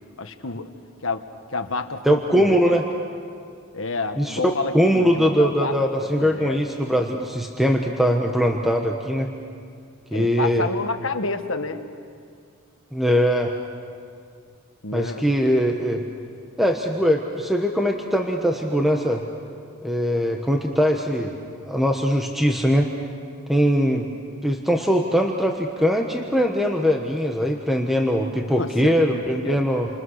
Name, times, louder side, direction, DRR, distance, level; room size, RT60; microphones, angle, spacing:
voice 1, 0.2-0.7 1.0-1.2 1.5-2.8 3.7-6.6 10.1-11.8 14.8-15.3 28.6-29.6, left 3 dB, 65° left, 7 dB, 1.5 m, -29 dB
voice 2, 2.0-2.8 4.2-4.4 4.7-9.3 10.1-10.7 12.9-13.5 14.9-16.0 16.6-19.2 19.8-21.4 21.6-22.9 23.5-24.1 24.4-29.9, equal, ahead, 2 dB, 1.2 m, -21 dB
29.0 x 26.5 x 6.5 m, 2.2 s
head